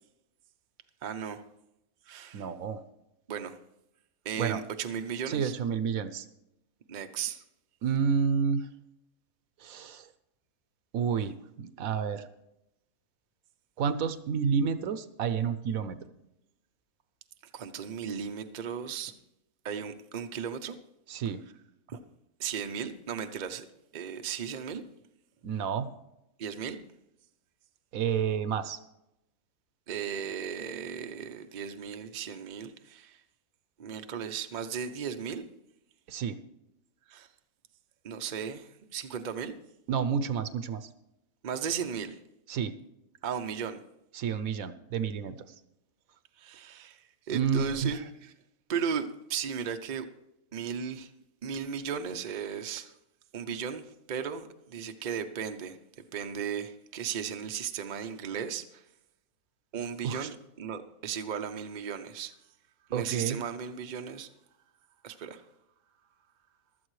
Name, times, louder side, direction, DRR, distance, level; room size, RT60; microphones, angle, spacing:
voice 1, 1.0-1.4 2.1-2.5 3.3-3.6 4.2-5.5 6.9-7.4 17.5-19.1 19.6-20.8 21.9-22.0 22.4-23.7 23.9-24.8 26.4-26.8 29.9-33.2 33.8-35.4 37.1-37.3 38.0-39.5 41.4-42.2 43.2-43.8 46.4-48.3 48.7-50.1 50.5-51.1 51.4-52.9 53.3-55.8 56.1-58.8 59.7-62.3 62.9-64.3 65.0-65.4, right 7 dB, 50° right, 0.5 m, -36 dB
voice 2, 2.3-2.8 4.4-4.6 5.3-6.3 7.8-8.7 9.6-10.1 10.9-12.3 13.8-16.0 21.1-21.4 25.4-25.9 27.9-28.8 36.1-36.4 39.9-40.9 42.5-42.7 44.1-45.4 47.3-48.0 60.0-60.3 62.9-63.4, right 6 dB, 65° right, 1.1 m, -30 dB
15.5 x 12.0 x 3.1 m
omnidirectional pair, 1.7 m